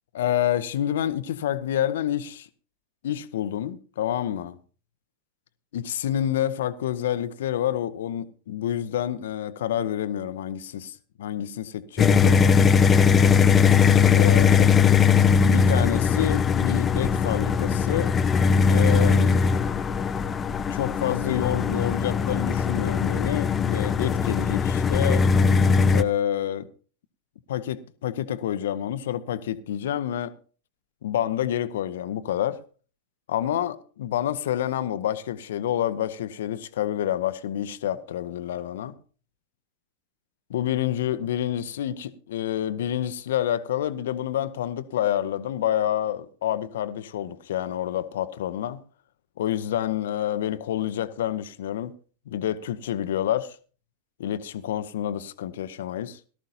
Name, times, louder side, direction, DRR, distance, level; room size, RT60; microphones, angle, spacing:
voice 1, 0.1-2.5 3.0-4.6 5.7-12.7 14.1-14.7 15.3-18.1 18.7-19.4 20.7-25.3 25.9-26.7 27.5-30.3 31.0-32.6 33.3-38.9 40.5-48.8 49.4-51.9 52.3-53.6 54.2-56.2, left 11 dB, 60° left, 0.8 m, -28 dB
sound 1, 12.0-26.0, left 6 dB, 20° left, 0.7 m, -20 dB
18.0 x 13.5 x 2.8 m
figure-of-eight pair, 90°, 0 cm